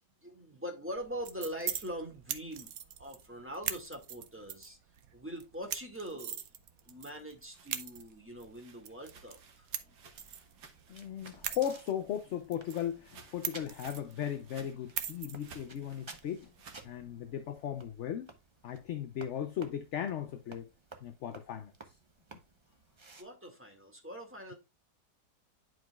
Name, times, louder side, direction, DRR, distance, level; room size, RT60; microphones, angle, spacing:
voice 1, 0.2-2.7 3.0-4.8 5.1-6.4 6.9-9.7 23.2-24.5, equal, 10° right, 1.9 m, -42 dB
sound 1, 1.0-17.9, right 9 dB, 65° right, 1.1 m, -44 dB
sound 2, 7.3-11.6 11.9-16.9, right 5 dB, 85° right, 1.8 m, -58 dB
sound 3, 10.1-23.2, right 3 dB, 30° right, 0.6 m, -56 dB
voice 2, 10.9-16.5 16.8-18.3 18.6-20.7 21.0-22.0, left 10 dB, 60° left, 0.8 m, -37 dB
11.0 x 5.0 x 2.3 m
omnidirectional pair, 1.7 m